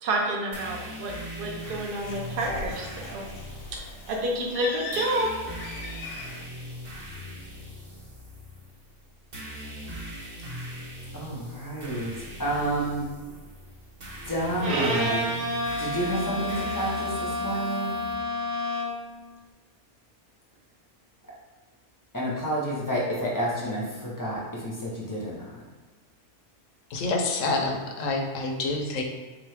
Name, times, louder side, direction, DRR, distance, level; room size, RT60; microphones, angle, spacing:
voice 1, 0.0-3.2 3.7-3.8 4.1-5.3, right 1 dB, 75° right, -1 dB, 0.5 m, -29 dB
sound 1, 0.5-18.1, equal, 40° right, 1.1 m, -40 dB
Bird, 1.4-6.4, left 4 dB, 90° left, 1.1 m, -40 dB
voice 2, 11.1-13.1 14.2-15.3 15.8-18.0 22.1-25.6, right 1 dB, 30° left, -5 dB, 0.4 m, -30 dB
Bowed string instrument, 14.6-19.1, equal, 60° right, 0.9 m, -29 dB
voice 3, 26.9-29.0, left 3 dB, 70° left, 3 dB, 0.8 m, -27 dB
3.6 x 3.0 x 3.3 m, 1.3 s
omnidirectional pair, 1.6 m